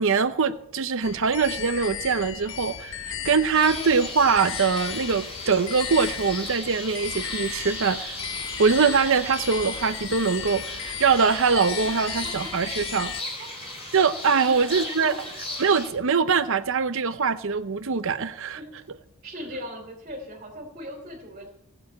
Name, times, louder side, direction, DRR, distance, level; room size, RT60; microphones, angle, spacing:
voice 1, 0.0-8.2 8.6-13.1 13.9-15.1 15.6-18.6, right 5 dB, 65° right, 0.8 m, -23 dB
sound 1, 1.0-13.2, left 9 dB, 60° left, 0.6 m, -36 dB
sound 2, 3.5-15.9, left 2 dB, 25° left, 4.5 m, -37 dB
sound 3, 5.4-16.7, right 2 dB, 10° right, 1.4 m, -46 dB
voice 2, 12.2-13.5 14.4-15.1 18.5-18.8 19.2-21.5, equal, 35° right, 3.1 m, -40 dB
18.0 x 6.8 x 8.5 m
head